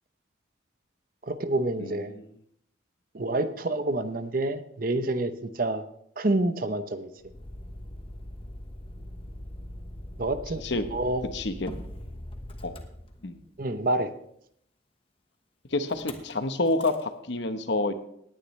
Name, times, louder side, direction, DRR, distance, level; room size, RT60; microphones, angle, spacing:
voice 1, 1.2-2.1 3.1-5.8 6.2-7.1 10.2-10.6 10.9-11.3 13.6-14.1, right 2 dB, 45° right, 10 dB, 0.8 m, -28 dB
voice 2, 1.8-2.3 10.6-10.8 11.3-11.7 12.6-12.7 13.2-13.4 15.7-17.9, left 2 dB, 65° left, 9 dB, 1.0 m, -28 dB
Motor vehicle (road), 7.2-13.6 15.9-16.3 16.7-17.0, left 1 dB, 30° left, 1.1 m, -41 dB
18.0 x 10.0 x 3.2 m, 0.71 s
head